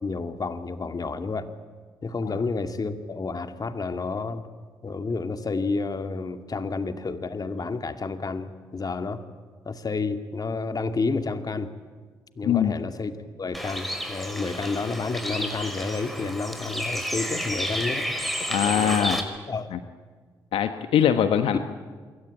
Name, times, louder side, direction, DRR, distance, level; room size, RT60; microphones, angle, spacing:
voice 1, 0.0-1.5 2.0-4.5 4.8-9.2 9.6-11.7 12.4-18.1 18.6-19.1 19.5-19.7 21.5-21.6, left 4 dB, 40° left, 8 dB, 2.4 m, -30 dB
voice 2, 12.4-12.7 18.5-19.2 19.7-19.8 20.5-21.6, left 9 dB, 70° left, 9 dB, 1.3 m, -22 dB
Bird, 13.5-19.2, equal, ahead, 5.4 m, -31 dB
27.5 x 22.5 x 9.0 m, 1.5 s
hypercardioid pair, 45°, 10 cm